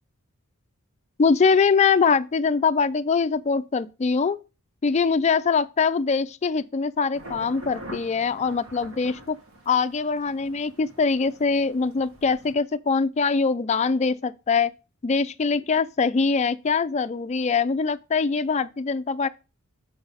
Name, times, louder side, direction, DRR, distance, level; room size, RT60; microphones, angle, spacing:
voice 1, 1.2-4.4 4.8-9.4 9.7-14.7 15.0-19.3, left 5 dB, 30° left, 0.3 m, -23 dB
sound 1, 7.1-12.5, right 1 dB, 70° right, 1.5 m, -45 dB
7.1 x 5.4 x 3.9 m
head